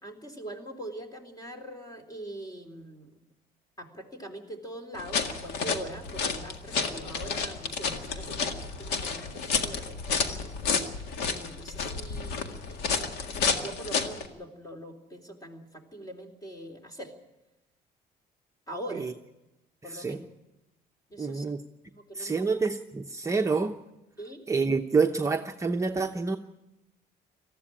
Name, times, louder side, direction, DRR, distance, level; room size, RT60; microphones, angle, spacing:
voice 1, 0.0-3.1 3.8-10.8 11.3-17.1 18.7-19.1 19.8-20.3 21.1-21.5 21.9-22.5 24.2-24.5, right 1 dB, 20° left, 4 dB, 3.4 m, -43 dB
sound 1, 5.0-14.3, left 5 dB, 80° left, 1.9 m, -31 dB
voice 2, 21.2-21.6 22.1-23.8 24.5-26.4, right 4 dB, 20° right, 3 dB, 0.8 m, -27 dB
19.0 x 14.5 x 10.0 m, 0.97 s
cardioid pair, 110°, 17 cm